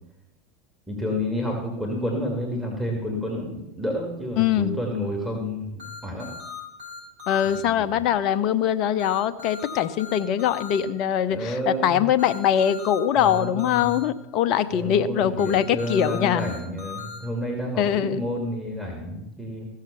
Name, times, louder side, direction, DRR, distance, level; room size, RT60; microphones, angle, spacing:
voice 1, 0.9-6.3 7.6-7.9 11.3-12.0 13.2-14.0 14.7-19.7, equal, 5° right, 0 dB, 2.6 m, -30 dB
voice 2, 4.4-4.8 7.3-16.5 17.8-18.2, left 9 dB, 50° left, 13 dB, 0.7 m, -22 dB
sound 1, 5.8-7.6 9.0-10.8 12.2-14.0 15.4-17.2, left 6 dB, 70° right, 6.0 m, -38 dB
15.5 x 6.6 x 7.0 m, 0.91 s
figure-of-eight pair, 80°, 0 cm